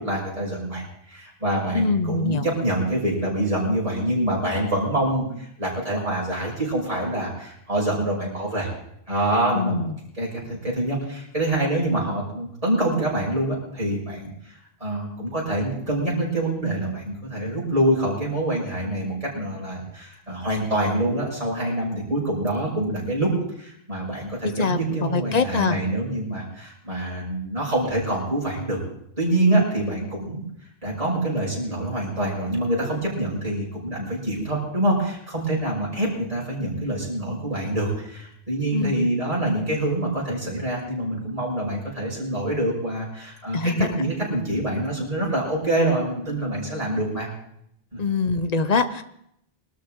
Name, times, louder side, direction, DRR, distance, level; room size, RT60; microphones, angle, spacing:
voice 1, 0.0-8.7 9.1-9.8 10.2-14.3 14.8-23.3 23.6-28.8 29.2-30.4 30.8-47.3 47.9-48.0, right 1 dB, 35° right, -5 dB, 6.0 m, -26 dB
voice 2, 1.7-2.4 9.5-10.0 24.4-25.8 29.5-29.6 36.6-36.7 38.7-39.1 43.5-43.9 48.0-49.0, left 4 dB, 45° left, 11 dB, 0.9 m, -24 dB
22.0 x 13.0 x 3.7 m, 0.73 s
omnidirectional pair, 1.0 m